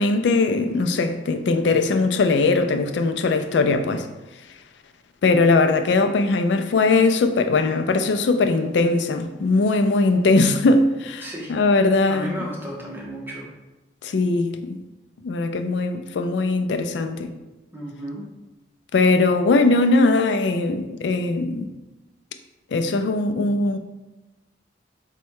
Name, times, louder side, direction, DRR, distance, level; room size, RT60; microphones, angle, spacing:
voice 1, 0.0-4.1 5.2-12.3 14.0-14.8 15.2-17.3 18.9-21.7 22.7-23.8, left 3 dB, 80° left, 8 dB, 0.4 m, -20 dB
voice 2, 11.2-11.5 12.1-13.5 17.7-18.3, right 1 dB, 10° right, -3 dB, 0.8 m, -33 dB
4.1 x 2.2 x 4.5 m, 1.0 s
head